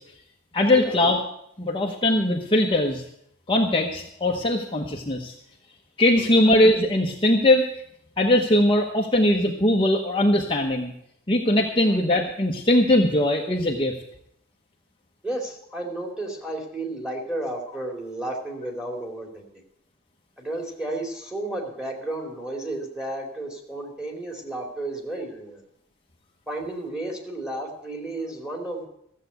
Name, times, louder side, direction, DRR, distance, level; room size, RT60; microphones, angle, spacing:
voice 1, 0.5-1.2 1.6-3.0 3.5-5.3 6.0-7.7 8.2-10.9 11.3-13.9, left 1 dB, 25° left, 0 dB, 1.0 m, -20 dB
voice 2, 15.2-19.4 20.4-25.6 26.5-28.9, right 1 dB, 5° right, -1 dB, 2.6 m, -32 dB
14.5 x 7.5 x 8.0 m, 0.74 s
head